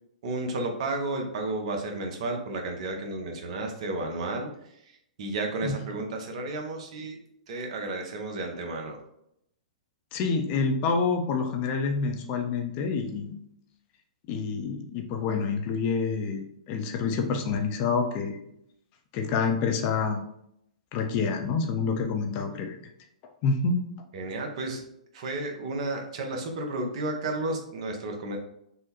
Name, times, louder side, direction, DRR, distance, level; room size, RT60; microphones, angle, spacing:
voice 1, 0.2-4.5 5.2-7.2 7.5-9.0 24.1-24.8 25.1-28.4, right 2 dB, 55° right, 2 dB, 0.8 m, -32 dB
voice 2, 10.1-13.4 14.3-18.4 19.1-20.2 20.9-22.8 23.4-23.8, left 5 dB, 35° left, 4 dB, 0.5 m, -27 dB
3.6 x 2.1 x 2.9 m, 0.74 s
hypercardioid pair, 115°, 4 cm